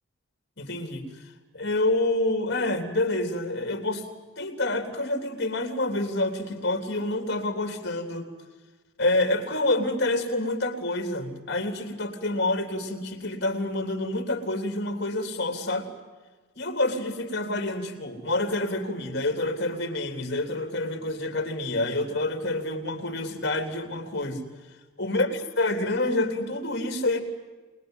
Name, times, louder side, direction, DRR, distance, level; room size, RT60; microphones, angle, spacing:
voice 1, 0.6-1.2 1.5-4.1 4.4-8.3 9.0-15.9 16.6-24.4 25.0-27.2, left 2 dB, 50° left, 6 dB, 3.5 m, -27 dB
28.0 x 21.0 x 9.2 m, 1.3 s
head